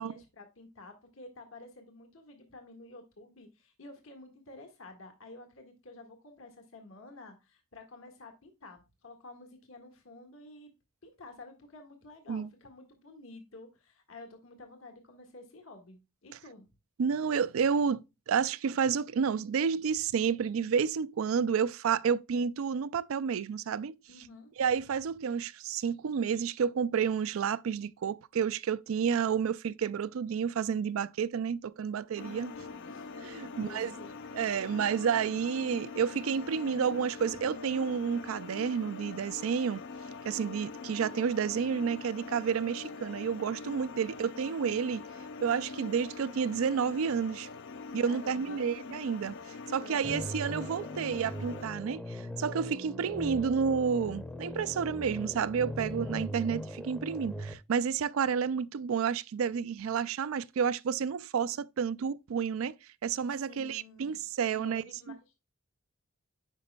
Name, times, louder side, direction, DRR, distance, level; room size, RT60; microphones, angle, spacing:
voice 1, 0.0-10.7 11.0-16.6 24.1-24.5 32.5-33.1 33.5-34.1 48.0-48.7 49.8-50.2 55.9-56.1 63.5-65.4, left 2 dB, 75° left, 1.6 m, -51 dB
voice 2, 17.0-18.0 18.3-24.0 24.6-32.5 33.2-33.9 34.3-39.8 40.2-45.0 45.4-47.5 47.9-49.4 49.7-62.8 63.0-65.2, right 6 dB, 90° right, 0.4 m, -30 dB
sound 1, 32.2-51.7, left 4 dB, 60° left, 0.4 m, -44 dB
sound 2, 50.0-57.5, left 1 dB, 5° left, 0.6 m, -40 dB
9.0 x 5.2 x 2.2 m
head